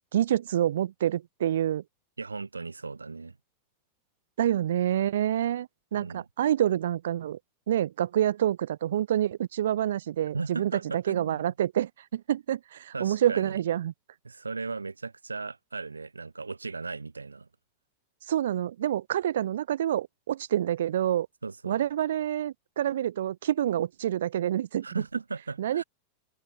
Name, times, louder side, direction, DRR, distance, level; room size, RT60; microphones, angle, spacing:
voice 1, 0.1-1.8 4.4-7.4 7.7-13.9 18.3-21.3 21.7-24.9 25.6-25.8, right 11 dB, 60° right, 2.1 m, -27 dB
voice 2, 2.2-3.4 5.9-6.2 10.3-11.5 12.9-13.6 14.2-17.5 21.4-21.8 24.8-25.8, right 4 dB, 80° right, 6.7 m, -37 dB
open air
figure-of-eight pair, 90°, 0 cm